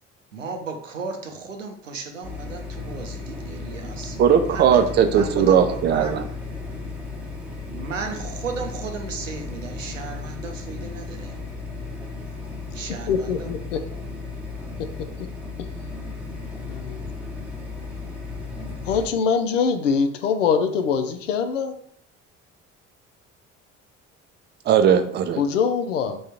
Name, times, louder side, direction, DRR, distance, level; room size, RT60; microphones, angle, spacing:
voice 1, 0.3-4.2 4.5-6.2 7.7-11.3 12.7-13.5, right 4 dB, 85° right, 4 dB, 0.5 m, -35 dB
sound 1, 2.2-19.1, left 3 dB, 5° right, 1.0 m, -35 dB
voice 2, 4.2-6.3 24.7-25.4, right 8 dB, 30° right, 8 dB, 0.4 m, -18 dB
voice 3, 13.1-13.8 14.8-15.1 16.6-17.0 18.8-21.8 25.4-26.2, left 6 dB, 80° left, 8 dB, 0.5 m, -23 dB
3.6 x 2.3 x 4.3 m, 0.63 s
figure-of-eight pair, 50°, 37 cm